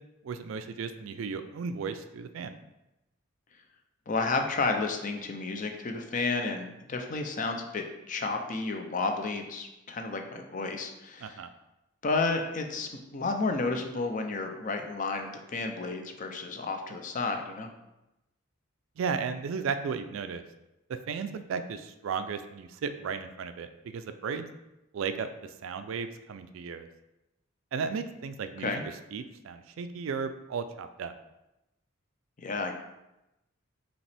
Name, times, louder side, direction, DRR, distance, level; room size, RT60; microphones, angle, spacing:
voice 1, 0.2-2.6 11.2-11.5 19.0-20.4 20.9-23.7 23.9-24.5 24.9-26.9 27.7-28.7 29.1-31.1, right 5 dB, 65° right, 10 dB, 0.3 m, -35 dB
voice 2, 4.1-11.4 12.0-17.7 28.6-28.8 32.4-32.7, left 3 dB, 40° left, 4 dB, 0.5 m, -31 dB
5.2 x 2.9 x 3.3 m, 0.93 s
head